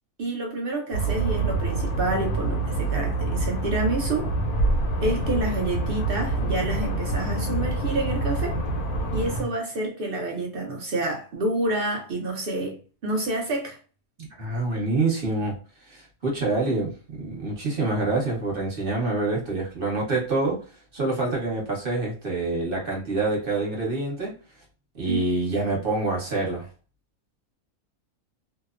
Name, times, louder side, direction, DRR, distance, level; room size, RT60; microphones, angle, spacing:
voice 1, 0.2-4.3 5.0-8.5 9.1-13.8 25.0-25.2, right 2 dB, 60° right, 0.6 m, -28 dB
sound 1, 0.9-9.4, right 2 dB, 85° left, 1.1 m, -26 dB
voice 2, 14.2-15.5 15.8-24.3 24.9-26.7, right 3 dB, 45° right, 1.1 m, -26 dB
2.8 x 2.0 x 2.4 m
omnidirectional pair, 1.5 m